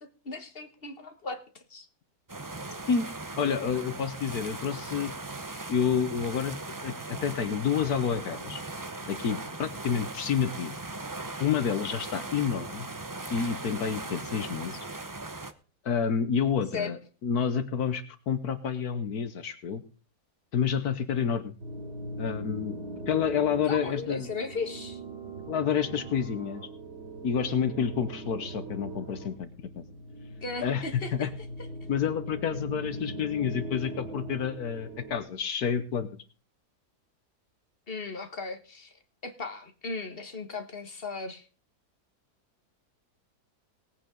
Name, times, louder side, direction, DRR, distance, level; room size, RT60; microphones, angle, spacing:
voice 1, 0.2-1.9 16.7-16.9 23.7-25.0 30.4-31.3 37.9-38.9 39.2-41.4, left 4 dB, 35° left, 8 dB, 1.7 m, -36 dB
sound 1, 2.3-15.5, right 2 dB, 20° right, 0.5 m, -39 dB
voice 2, 3.4-5.1 5.7-6.6 6.8-8.6 9.1-10.8 11.4-12.9 13.3-14.8 15.8-19.8 20.5-21.5 22.2-22.8 23.1-24.3 25.5-26.6 27.2-29.5 29.7-29.8 30.6-31.3 31.9-36.1, left 7 dB, 70° left, 12 dB, 1.5 m, -29 dB
sound 2, 21.6-35.2, right 1 dB, 85° right, 4.3 m, -40 dB
19.0 x 8.9 x 3.8 m, 0.38 s
omnidirectional pair, 1.7 m